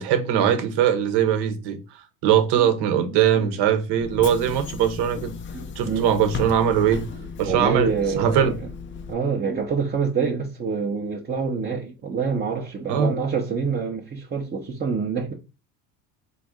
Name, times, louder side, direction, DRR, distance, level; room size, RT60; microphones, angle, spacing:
voice 1, 0.0-1.8 2.2-5.3 5.8-7.1 7.4-8.5 12.9-13.1, right 9 dB, 65° right, 1.0 m, -21 dB
voice 2, 3.0-3.5 5.5-6.1 7.4-8.6 9.1-15.3, right 5 dB, 25° right, 0.7 m, -26 dB
Bus / Engine, 4.0-9.1, left 5 dB, 30° left, 0.5 m, -35 dB
3.9 x 2.6 x 3.5 m
supercardioid pair, 100°, 43 cm